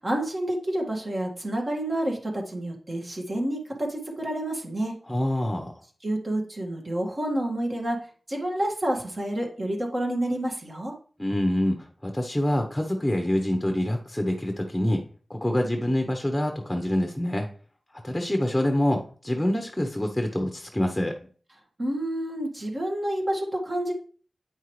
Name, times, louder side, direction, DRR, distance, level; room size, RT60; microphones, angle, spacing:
voice 1, 0.0-4.9 6.0-8.0 8.3-10.9 21.8-23.9, right 1 dB, 40° right, 0 dB, 2.0 m, -29 dB
voice 2, 5.1-5.7 11.2-15.0 15.3-17.5 18.0-21.2, left 1 dB, 10° left, 4 dB, 0.9 m, -26 dB
8.6 x 5.5 x 3.2 m, 0.42 s
wide cardioid pair, 80°, 0 cm